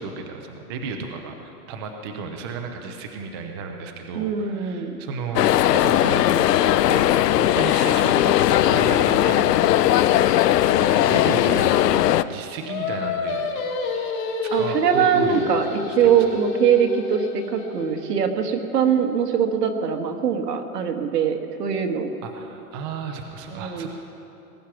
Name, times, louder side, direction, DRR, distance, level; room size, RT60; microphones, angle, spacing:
voice 1, 0.0-6.5 6.8-13.4 14.5-16.2 22.2-23.9, right 4 dB, 15° right, 4 dB, 0.5 m, -33 dB
voice 2, 4.2-5.0 14.5-15.7 16.0-22.1 23.5-23.9, right 8 dB, 85° right, 5 dB, 1.7 m, -22 dB
sound 1, 5.4-12.2, left 12 dB, 90° left, 0.6 m, -18 dB
Singing, 12.7-18.0, left 5 dB, 30° left, 1.4 m, -29 dB
19.5 x 10.0 x 5.9 m, 2.8 s
hypercardioid pair, 160°, 47 cm